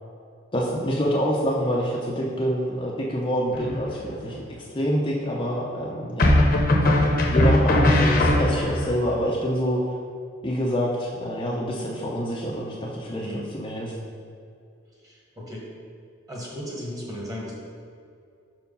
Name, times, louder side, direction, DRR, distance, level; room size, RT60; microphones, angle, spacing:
voice 1, 0.5-6.4 7.3-9.8 10.4-13.9, equal, 25° left, -3 dB, 0.6 m, -26 dB
sound 1, 3.5-4.1 6.2-8.9, left 1 dB, 50° left, 0.9 m, -19 dB
voice 2, 13.1-13.5 15.0-15.6 16.3-17.5, left 1 dB, 20° right, -3 dB, 1.4 m, -35 dB
6.0 x 4.5 x 5.4 m, 2.3 s
head